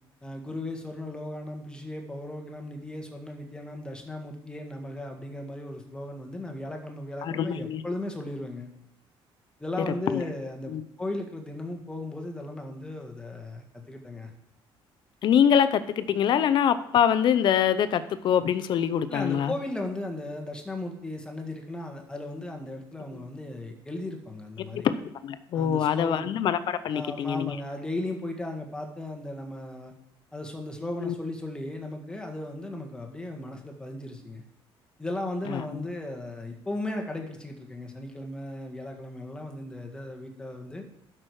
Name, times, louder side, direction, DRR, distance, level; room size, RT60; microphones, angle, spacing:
voice 1, 0.2-8.7 9.6-14.3 19.1-24.9 25.5-26.3 26.9-29.9 30.3-34.4 35.0-40.8, left 1 dB, 10° left, 3 dB, 1.6 m, -36 dB
voice 2, 7.2-7.8 9.9-10.2 10.7-10.8 15.2-19.5 24.8-24.9 25.2-27.6 31.0-31.2 35.5-35.9, left 9 dB, 50° left, 12 dB, 0.7 m, -24 dB
12.0 x 6.1 x 4.8 m, 0.82 s
cardioid pair, 145°, 10 cm